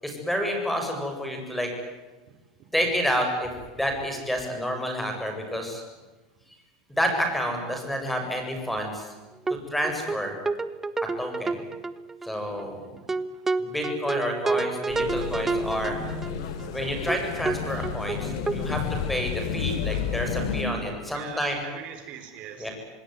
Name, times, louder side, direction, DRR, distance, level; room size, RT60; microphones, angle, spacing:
voice 1, 0.0-1.7 2.7-3.5 3.8-5.8 6.9-9.1 9.7-10.4 11.2-11.6 12.2-12.8 13.6-16.0 16.7-21.6 22.6-22.7, equal, 5° left, 4 dB, 8.0 m, -29 dB
sound 1, 9.5-9.6 9.8-12.3 12.6-12.7 13.1-16.7 17.1-17.2 17.4-17.6 17.8-18.6, right 3 dB, 10° right, 1.3 m, -29 dB
voice 2, 12.6-13.5 14.5-14.6 15.8-16.6 17.6-17.7 21.1-22.7, right 9 dB, 45° right, 7 dB, 4.0 m, -44 dB
sound 2, 14.9-20.7, left 7 dB, 75° left, 4.3 m, -31 dB
27.5 x 20.0 x 9.8 m, 1.2 s
supercardioid pair, 140°, 3 cm